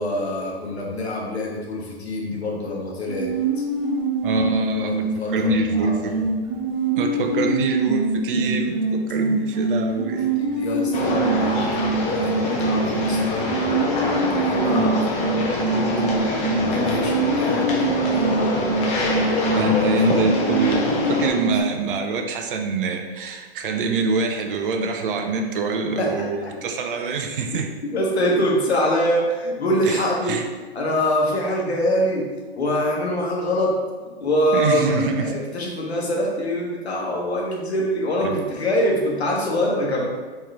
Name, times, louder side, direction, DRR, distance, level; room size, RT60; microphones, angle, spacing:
voice 1, 0.0-3.6 4.3-4.5 4.8-6.2 10.0-14.9 15.2-15.6 16.6-18.7 21.1-21.4 26.0-26.3 27.8-30.4 30.7-32.3 32.6-33.7 34.2-40.0, equal, 85° left, -2 dB, 1.4 m, -25 dB
sound 1, 3.1-21.6, right 3 dB, 25° right, 0.9 m, -24 dB
voice 2, 4.2-5.0 5.3-6.1 7.0-10.3 13.0-13.2 14.5-15.0 19.5-27.7 29.9-30.4 34.5-35.4 38.2-38.4, right 3 dB, 55° right, 4 dB, 0.7 m, -25 dB
sound 2, 10.9-21.3, left 2 dB, 20° left, 0.7 m, -25 dB
4.5 x 3.1 x 3.5 m, 1.4 s
hypercardioid pair, 130°, 32 cm